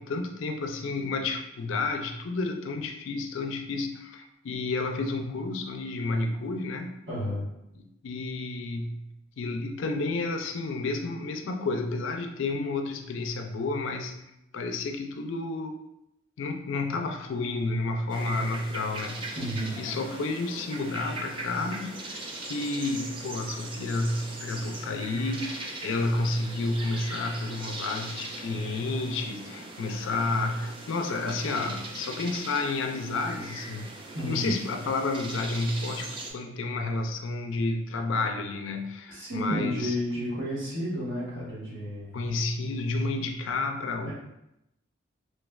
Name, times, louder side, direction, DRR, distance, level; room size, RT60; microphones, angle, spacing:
voice 1, 0.0-7.0 7.7-14.2 14.5-15.8 16.4-19.4 19.8-33.9 34.2-40.0 42.1-44.1, left 3 dB, 70° left, 5 dB, 0.4 m, -31 dB
voice 2, 7.1-7.5 19.3-19.8 34.1-34.5 39.1-42.2 44.0-44.1, equal, 65° right, -8 dB, 1.4 m, -31 dB
sound 1, 18.1-36.3, right 2 dB, 25° right, 0.3 m, -40 dB
3.2 x 3.1 x 2.3 m, 0.84 s
head